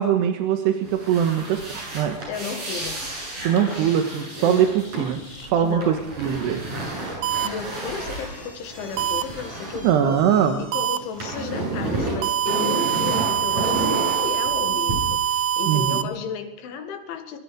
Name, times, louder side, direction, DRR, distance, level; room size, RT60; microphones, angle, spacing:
voice 1, 0.0-2.2 3.4-6.6 9.8-10.6 15.7-16.1, right 8 dB, 70° right, 5 dB, 3.1 m, -22 dB
sound 1, 0.8-10.6 10.9-14.9, right 2 dB, 35° right, 9.4 m, -31 dB
voice 2, 2.3-3.0 4.4-4.7 5.6-6.0 7.4-10.2 10.6-17.4, left 6 dB, 75° left, 7 dB, 4.3 m, -34 dB
sound 2, 3.3-5.5 7.6-11.5, left 2 dB, 20° left, 1.2 m, -44 dB
sound 3, 7.2-7.5 9.0-9.2 10.7-11.0 12.2-16.0, right 9 dB, 90° right, 1.8 m, -24 dB
23.5 x 22.5 x 5.1 m, 0.79 s
omnidirectional pair, 5.6 m